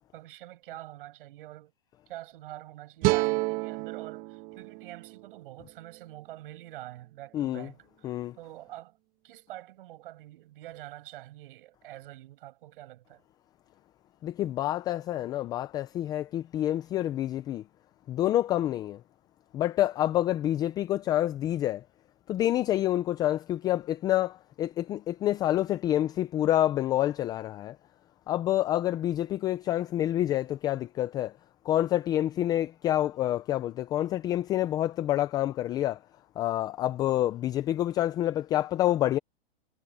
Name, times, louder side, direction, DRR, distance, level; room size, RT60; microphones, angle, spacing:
voice 1, 0.1-1.7 2.1-9.0 9.2-13.2, right 15 dB, 60° right, 7.9 m, -46 dB
sound 1, 3.0-6.2, right 22 dB, 35° right, 1.2 m, -31 dB
voice 2, 7.3-7.7 8.0-8.4 14.2-17.6 18.1-19.0 19.5-21.8 22.3-27.8 28.3-31.3 31.6-36.0 36.4-39.2, left 13 dB, 15° left, 0.4 m, -28 dB
hypercardioid pair, 145°, 30 cm